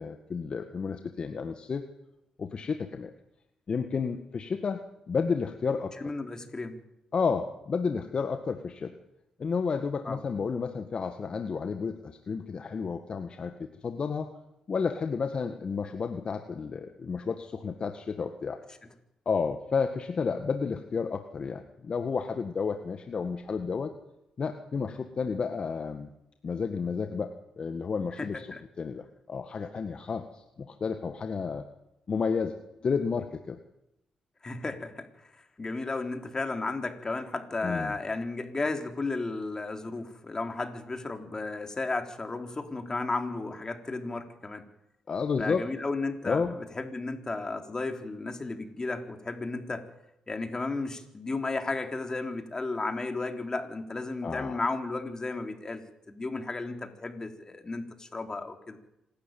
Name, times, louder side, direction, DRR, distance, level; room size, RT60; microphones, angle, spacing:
voice 1, 0.0-1.8 2.4-3.1 3.7-5.9 7.1-8.9 9.4-13.5 13.8-14.3 14.7-18.6 19.2-23.9 24.4-26.1 26.4-28.5 28.8-31.7 32.1-32.5 32.8-33.6 37.6-38.0 45.1-45.7 46.2-46.5 54.2-54.6, left 5 dB, 50° left, 7 dB, 1.7 m, -31 dB
voice 2, 6.0-6.8 10.1-10.2 28.2-28.6 34.4-44.6 45.4-49.8 50.3-58.8, left 3 dB, 30° left, 5 dB, 3.8 m, -34 dB
26.5 x 13.0 x 9.3 m, 0.88 s
supercardioid pair, 50°, 2 cm